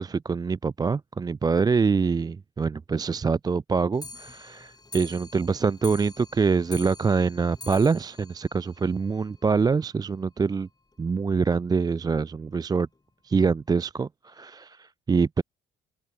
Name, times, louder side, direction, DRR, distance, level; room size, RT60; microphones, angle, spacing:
voice 1, 0.0-10.7 11.0-12.9 13.2-15.4, right 5 dB, 20° right, 0.3 m, -25 dB
Clock, 3.9-9.4 9.8-9.9 10.1-10.2 10.5-10.6 10.9-11.0 11.7-11.8 12.5-12.6 13.3-13.4, left 3 dB, 20° left, 4.0 m, -45 dB
cardioid pair, 90°, 20 cm